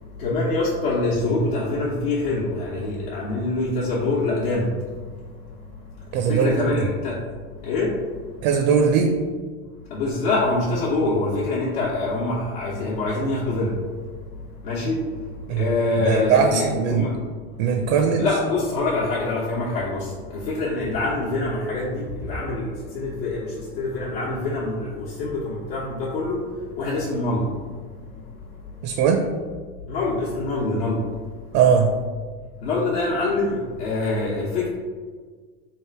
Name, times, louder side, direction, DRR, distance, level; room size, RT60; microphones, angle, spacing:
voice 1, 0.2-4.7 6.3-7.2 7.6-7.9 9.9-13.7 14.6-15.0 15.6-17.1 18.2-20.1 20.5-22.7 22.9-23.5 23.8-26.4 26.8-27.4 29.9-31.0 32.6-34.7, left 2 dB, 80° left, -7 dB, 1.0 m, -25 dB
voice 2, 6.1-6.9 8.4-9.2 15.5-15.7 16.0-17.1 17.6-18.3 28.8-29.3 31.5-31.9, right 6 dB, 55° right, 4 dB, 0.5 m, -20 dB
3.5 x 2.5 x 4.5 m, 1.5 s
supercardioid pair, 140°, 30 cm